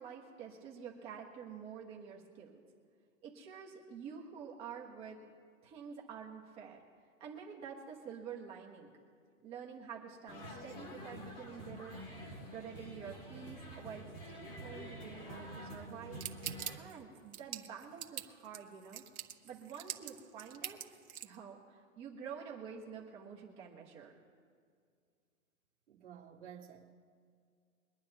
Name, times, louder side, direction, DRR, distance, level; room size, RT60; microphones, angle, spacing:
voice 1, 0.0-2.6 3.2-5.3 5.6-6.8 7.2-8.9 9.4-12.0 12.5-16.2 16.7-19.0 19.4-20.8 21.2-24.1, right 7 dB, 15° right, 1.2 m, -48 dB
sound 1, 10.3-16.8, equal, 20° left, 1.6 m, -48 dB
sound 2, 16.2-21.3, right 9 dB, 85° right, 1.5 m, -43 dB
voice 2, 25.9-26.9, right 8 dB, 55° right, 2.1 m, -52 dB
24.0 x 10.0 x 2.9 m
hypercardioid pair, 165°, 42 cm